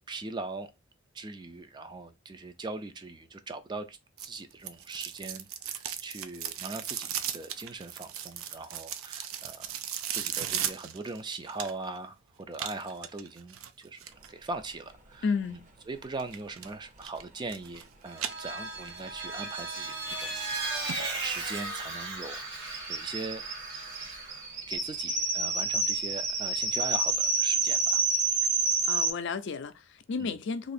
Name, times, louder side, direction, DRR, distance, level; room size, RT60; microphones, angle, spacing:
voice 1, 0.1-0.7 1.1-9.7 10.1-14.0 14.3-15.2 15.5-15.6 15.9-22.4 22.9-23.4 24.7-28.0 30.2-30.3, right 3 dB, 20° right, 0.3 m, -40 dB
sound 1, 4.2-12.0 12.5-14.3 16.2-16.7 17.0-17.8 18.1-19.0 19.4-19.5 20.1-20.2 20.5-20.6 20.9-21.0 21.3-21.4, right 10 dB, 90° right, 0.4 m, -37 dB
voice 2, 15.2-15.7 28.8-30.7, left 5 dB, 60° left, 0.4 m, -32 dB
Vehicle, 18.1-24.4, right 2 dB, 55° right, 1.1 m, -37 dB
sound 2, 19.4-19.5 19.7-19.8 20.1-29.1, right 3 dB, 40° right, 0.7 m, -29 dB
2.8 x 2.5 x 4.1 m
head